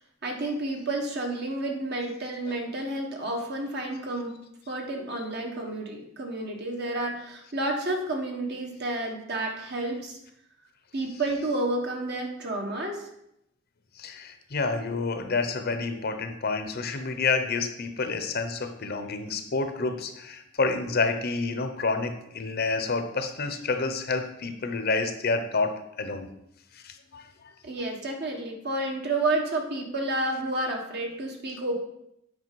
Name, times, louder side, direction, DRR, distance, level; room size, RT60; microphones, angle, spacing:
voice 1, 0.2-4.4 4.7-10.2 10.9-13.1 27.6-31.8, right 2 dB, 55° right, 1 dB, 1.5 m, -30 dB
voice 2, 14.0-26.3 26.7-27.3, left 4 dB, 50° left, 8 dB, 0.7 m, -29 dB
8.4 x 4.9 x 4.7 m, 0.79 s
head